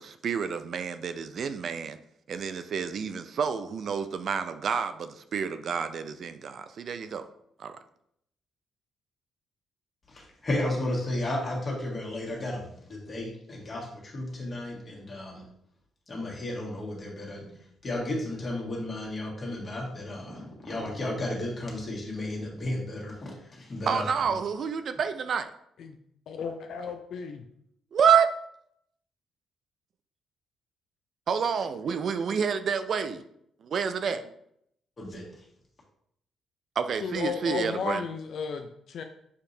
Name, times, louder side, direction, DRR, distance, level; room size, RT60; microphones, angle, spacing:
voice 1, 0.0-2.0 2.3-7.2 7.6-7.8 23.9-25.5 27.9-28.3 31.3-33.2 33.6-34.3 36.8-38.0, right 7 dB, 55° right, 0.3 m, -28 dB
voice 2, 10.1-15.5 16.1-24.4 35.0-35.3, left 1 dB, 35° left, 1.7 m, -33 dB
voice 3, 26.3-27.4 37.0-39.0, left 6 dB, 70° left, 0.3 m, -34 dB
6.5 x 2.7 x 2.6 m
cardioid pair, 90°, 0 cm